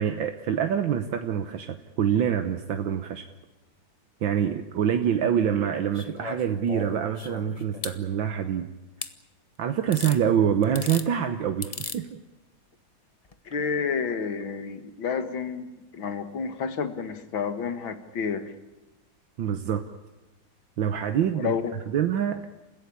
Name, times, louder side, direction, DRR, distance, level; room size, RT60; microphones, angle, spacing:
voice 1, 0.0-3.3 4.2-8.7 9.6-12.1 19.4-19.8 20.8-21.5 21.9-22.4, right 8 dB, 75° right, 8 dB, 1.8 m, -25 dB
sound 1, 5.9-8.0 9.0-9.1 9.9-10.2 10.6-11.1 11.6-12.0 13.2-13.3, left 4 dB, 30° left, 0.8 m, -37 dB
voice 2, 13.5-15.7 15.9-18.5 21.3-21.7, left 6 dB, 85° left, 10 dB, 2.4 m, -30 dB
29.0 x 16.0 x 8.6 m, 1.1 s
omnidirectional pair, 2.1 m